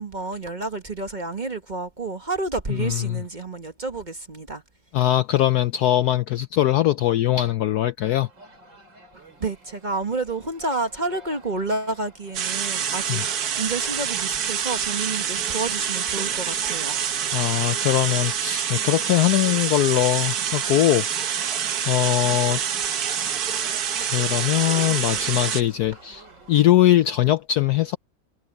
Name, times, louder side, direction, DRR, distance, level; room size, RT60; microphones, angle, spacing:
voice 1, 0.0-4.6 9.4-17.0, right 3 dB, 25° right, 1.3 m, -30 dB
voice 2, 2.7-3.2 4.9-8.3 13.1-13.2 17.3-21.4 21.9-22.6 24.0-28.0, left 13 dB, 70° left, 1.0 m, -21 dB
sound 1, 8.0-26.6, right 3 dB, 75° right, 5.9 m, -47 dB
sound 2, 12.3-25.6, right 8 dB, 55° right, 1.4 m, -26 dB
omnidirectional pair, 2.1 m